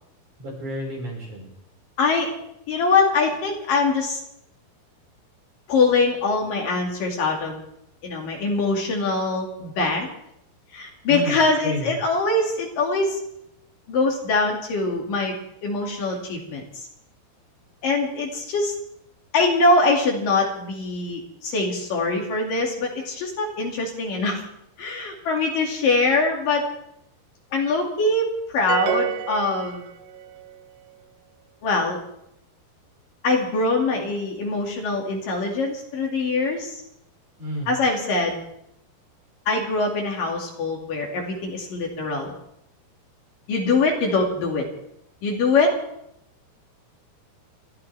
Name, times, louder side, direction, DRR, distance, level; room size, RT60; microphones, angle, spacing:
voice 1, 0.4-1.5 11.1-11.4 11.6-11.9 37.4-37.7, equal, 50° right, -2 dB, 6.8 m, -30 dB
voice 2, 2.0-2.3 2.7-4.2 5.7-7.6 8.0-10.1 10.7-13.2 13.9-15.4 15.6-16.8 17.8-18.7 19.3-24.4 24.8-26.7 27.5-29.9 31.6-32.0 33.2-36.8 37.7-38.4 39.5-42.3 43.5-44.7 45.2-45.7, left 3 dB, 60° left, 0 dB, 3.8 m, -23 dB
sound 1, 28.7-30.4, right 8 dB, 75° right, 2.0 m, -27 dB
29.5 x 14.0 x 3.4 m, 0.76 s
omnidirectional pair, 4.6 m